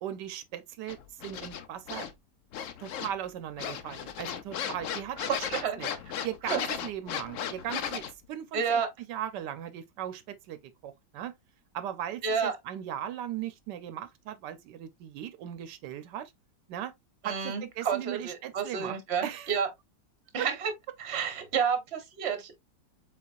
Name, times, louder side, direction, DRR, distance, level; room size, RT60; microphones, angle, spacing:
voice 1, 0.0-2.1 2.8-5.2 5.8-5.9 6.2-8.8 9.1-11.3 11.7-16.3 16.7-16.9 17.2-19.5 20.4-20.5, right 10 dB, 85° right, 1.2 m, -38 dB
sound 1, 0.9-2.1 2.5-3.3 3.6-8.1, left 8 dB, 65° left, 0.8 m, -36 dB
voice 2, 5.2-5.8 6.5-6.6 8.5-8.9 12.2-12.5 17.2-19.7 20.3-20.7 21.0-22.6, right 6 dB, 45° right, 1.1 m, -30 dB
4.1 x 4.1 x 2.3 m
omnidirectional pair, 1.8 m